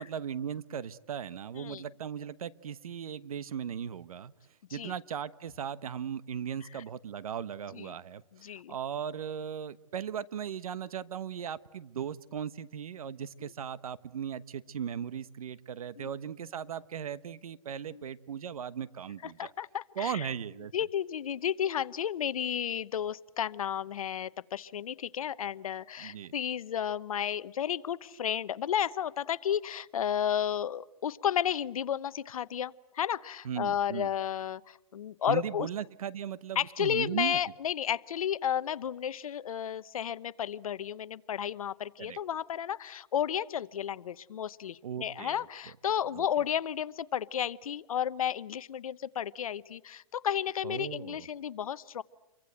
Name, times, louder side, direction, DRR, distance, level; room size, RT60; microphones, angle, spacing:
voice 1, 0.0-4.3 4.7-19.5 20.0-20.7 26.0-26.3 33.4-34.1 35.3-37.4 42.0-42.2 44.8-45.5 46.1-46.2 50.6-51.3, right 8 dB, 80° right, 16 dB, 1.1 m, -37 dB
voice 2, 8.3-8.7 13.4-13.5 16.0-16.1 17.9-18.0 19.4-20.3 20.7-35.7 36.6-52.0, left 9 dB, 75° left, 17 dB, 0.9 m, -32 dB
27.5 x 23.5 x 7.9 m, 0.94 s
hypercardioid pair, 145°, 18 cm